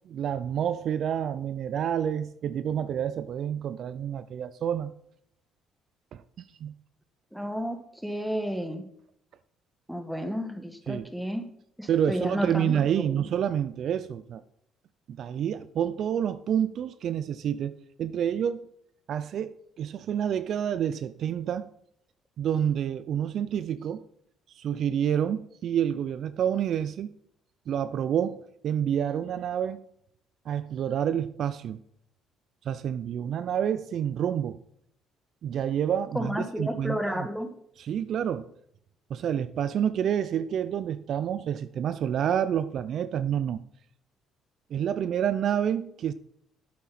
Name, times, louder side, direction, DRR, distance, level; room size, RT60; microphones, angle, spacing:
voice 1, 0.1-4.9 6.1-6.2 6.6-6.7 10.9-11.1 11.9-14.4 15.2-18.7 19.1-21.7 22.4-24.0 24.5-27.1 27.7-29.8 30.5-31.8 32.7-34.6 35.4-37.3 37.8-38.5 39.1-43.6 44.7-46.1, right 9 dB, 60° right, 0.4 m, -28 dB
voice 2, 7.3-8.8 9.9-11.4 11.8-13.2 36.1-37.5, equal, ahead, 1.4 m, -32 dB
8.4 x 7.5 x 4.1 m
supercardioid pair, 65°, 0 cm